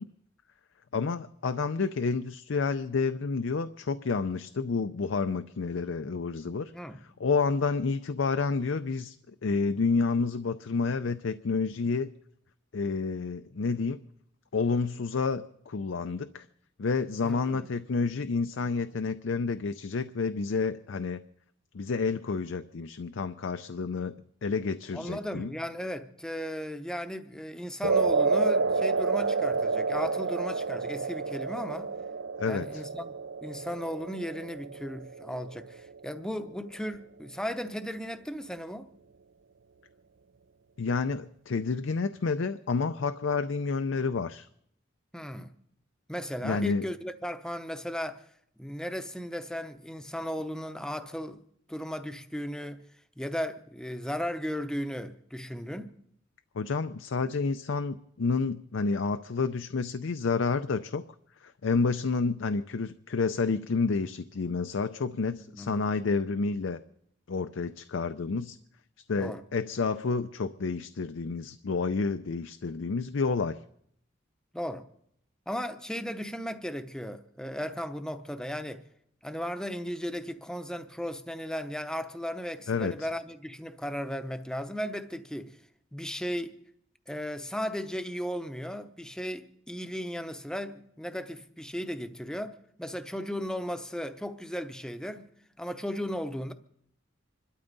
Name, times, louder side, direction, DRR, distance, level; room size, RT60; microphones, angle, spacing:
voice 1, 0.9-6.7 7.0-12.1 12.7-14.0 14.5-16.5 16.8-21.2 21.7-24.1 24.4-25.5 32.4-32.8 40.8-44.5 46.4-46.8 56.5-61.0 61.4-66.8 67.3-68.6 69.1-73.6 82.7-83.1, left 4 dB, 75° left, 0.5 m, -29 dB
voice 2, 17.2-17.6 24.9-31.9 32.5-38.9 45.1-45.5 46.1-48.2 48.6-51.4 51.7-52.8 53.2-55.9 65.5-65.9 69.2-69.4 74.5-74.8 75.5-78.8 79.2-85.6 85.9-86.6 87.1-95.3 95.6-96.5, equal, 5° left, 0.7 m, -36 dB
sound 1, 27.8-36.2, right 4 dB, 70° right, 0.6 m, -29 dB
26.5 x 12.5 x 4.0 m
head